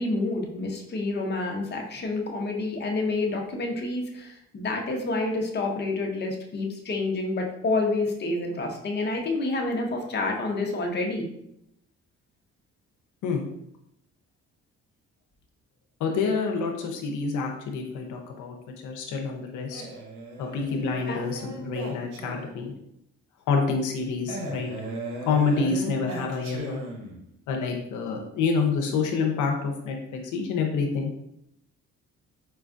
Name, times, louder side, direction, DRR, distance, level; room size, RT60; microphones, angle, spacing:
voice 1, 0.0-11.3 21.1-21.3, left 2 dB, 35° left, 1 dB, 0.7 m, -28 dB
voice 2, 16.0-18.6 18.8-19.8 20.4-22.7 23.5-24.7 25.2-26.8 27.5-31.1, left 5 dB, 80° left, 2 dB, 0.6 m, -27 dB
Male speech man speaking, 19.7-22.7 24.3-27.3, right 2 dB, 80° right, 0.9 m, -37 dB
4.4 x 2.3 x 2.5 m, 0.77 s
cardioid pair, 90°, 30 cm